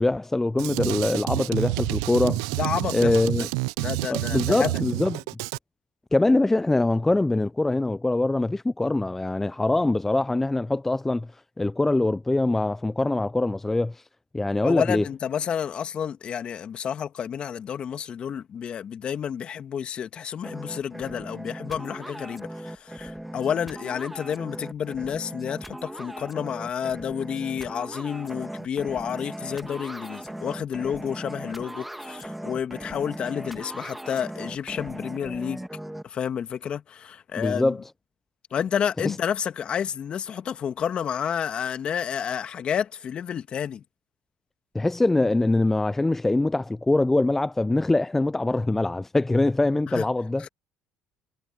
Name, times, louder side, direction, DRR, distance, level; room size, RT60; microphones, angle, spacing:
voice 1, 0.0-2.5 2.9-3.5 4.1-5.2 6.1-11.3 11.6-14.0 14.3-15.0 37.4-37.8 39.0-39.2 44.7-50.5, left 2 dB, 10° left, 0.5 m, -23 dB
Drum kit, 0.6-5.6, right 24 dB, 90° right, 0.4 m, -29 dB
voice 2, 2.6-3.5 3.8-4.8 14.6-35.6 36.0-37.8 38.5-43.8 49.9-50.1 50.4-50.5, left 8 dB, 45° left, 2.1 m, -30 dB
sound 1, 20.4-36.0, right 1 dB, 5° right, 1.6 m, -38 dB
supercardioid pair, 80°, 2 cm